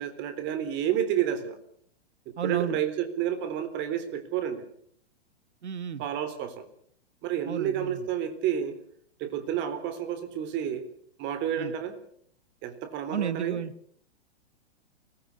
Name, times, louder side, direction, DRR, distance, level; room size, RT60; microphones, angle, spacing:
voice 1, 0.0-1.6 2.3-4.6 6.0-6.7 7.2-8.8 9.2-10.9 11.2-12.0 12.6-13.6, right 10 dB, 35° right, 10 dB, 3.6 m, -30 dB
voice 2, 2.4-2.8 5.6-6.0 7.5-8.0 11.6-11.7 13.1-13.7, right 8 dB, 85° right, 15 dB, 1.4 m, -32 dB
24.0 x 19.5 x 7.0 m, 0.64 s
hypercardioid pair, 120°, 33 cm